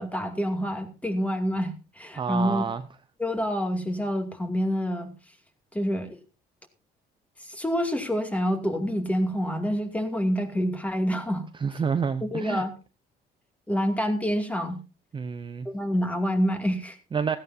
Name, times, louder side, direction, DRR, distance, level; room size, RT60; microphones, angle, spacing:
voice 1, 0.0-2.6 3.2-5.1 5.7-6.2 7.4-11.5 12.2-12.7 13.7-14.8 15.6-17.0, equal, 10° left, 2.4 m, -27 dB
voice 2, 2.2-2.8 11.6-12.6 15.1-15.7 17.1-17.4, right 6 dB, 30° right, 0.7 m, -28 dB
16.0 x 14.5 x 2.7 m
cardioid pair, 110°, 17 cm